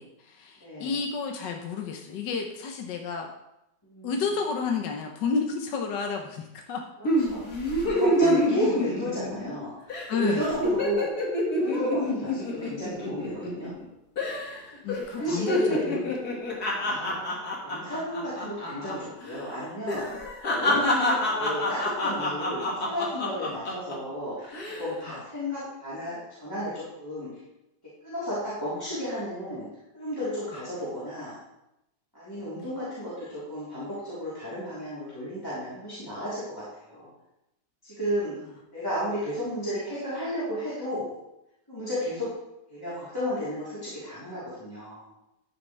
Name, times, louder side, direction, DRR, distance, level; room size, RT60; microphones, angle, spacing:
voice 1, 0.0-3.3 4.0-6.8 8.2-8.5 10.1-10.7 14.8-16.1 20.7-20.9 32.5-32.6, left 5 dB, 75° left, 2 dB, 1.5 m, -31 dB
voice 2, 0.6-1.0 3.8-4.1 7.3-11.1 11.6-13.7 15.1-15.9 16.7-17.2 17.6-20.1 20.6-27.3 28.0-29.6 29.9-31.4 32.1-37.1 37.8-38.4 38.7-41.1 41.7-42.3 42.7-45.0, equal, 10° left, -12 dB, 3.4 m, -33 dB
sound 1, 7.0-9.6 9.9-10.1 10.4-13.8 14.2-14.6 14.9-19.0 19.2-19.4 19.9-23.9 24.4-24.9, left 1 dB, 55° left, 2.4 m, -27 dB
13.0 x 7.1 x 3.3 m, 0.86 s
omnidirectional pair, 2.0 m